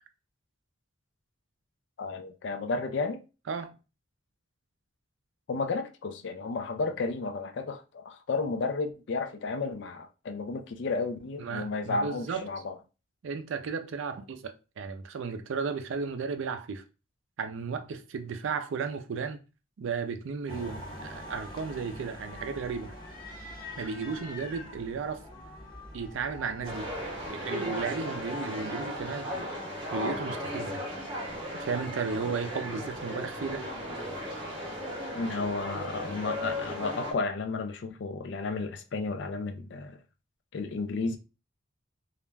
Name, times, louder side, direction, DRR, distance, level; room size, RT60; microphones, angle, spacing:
voice 1, 2.0-3.2 5.5-12.8 35.1-40.0 40.5-41.2, left 3 dB, 55° left, 0.3 m, -32 dB
voice 2, 11.4-12.5 13.2-16.8 17.4-19.4 19.8-22.9 23.8-25.2 25.9-26.9 27.3-29.3 29.9-30.8 31.5-33.7, right 5 dB, 70° right, 0.4 m, -34 dB
sound 1, 20.5-27.3, left 1 dB, 20° left, 0.7 m, -44 dB
sound 2, 26.6-37.1, equal, 25° right, 0.7 m, -36 dB
2.3 x 2.1 x 3.2 m
head